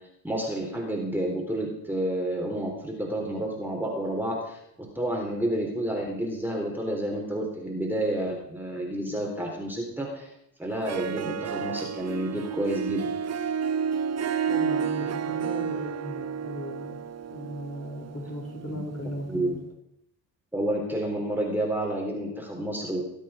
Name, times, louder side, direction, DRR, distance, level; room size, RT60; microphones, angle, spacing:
voice 1, 0.2-10.3 10.6-13.1 18.7-18.8 19.3-19.5 20.5-23.0, right 1 dB, 5° right, -1 dB, 4.0 m, -30 dB
Harp, 10.7-19.3, right 7 dB, 30° right, 0.8 m, -31 dB
voice 2, 14.5-17.0 17.3-19.6, equal, 30° left, -2 dB, 5.4 m, -37 dB
20.0 x 8.6 x 5.3 m, 0.79 s
hypercardioid pair, 55°, 50 cm